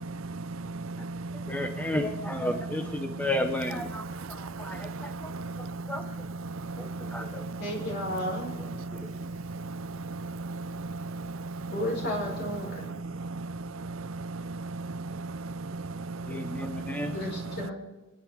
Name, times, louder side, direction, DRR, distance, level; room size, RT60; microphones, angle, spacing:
voice 1, 0.0-1.7 3.0-3.3 4.1-5.7 6.7-7.6 8.8-11.7 12.9-17.2, right 3 dB, 75° right, 0.6 m, -37 dB
voice 2, 1.5-6.0 6.8-7.4 8.9-9.1 16.2-17.2, left 1 dB, 10° left, 0.8 m, -33 dB
voice 3, 7.6-8.6 11.7-12.9 17.1-17.7, left 1 dB, 55° left, 5.1 m, -33 dB
30.0 x 10.5 x 3.6 m
head